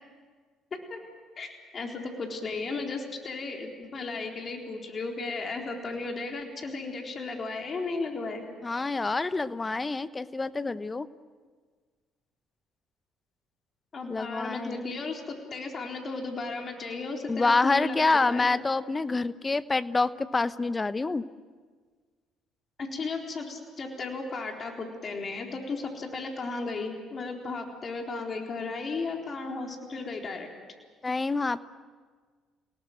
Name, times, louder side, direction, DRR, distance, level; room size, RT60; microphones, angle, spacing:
voice 1, 1.4-8.4 13.9-18.0 18.3-18.5 22.8-30.5, left 3 dB, 45° left, 2 dB, 4.0 m, -35 dB
voice 2, 8.6-11.1 14.1-14.9 17.3-21.2 31.0-31.6, left 3 dB, 25° left, 15 dB, 1.0 m, -27 dB
29.5 x 18.5 x 7.8 m, 1.5 s
hypercardioid pair, 55°, 0 cm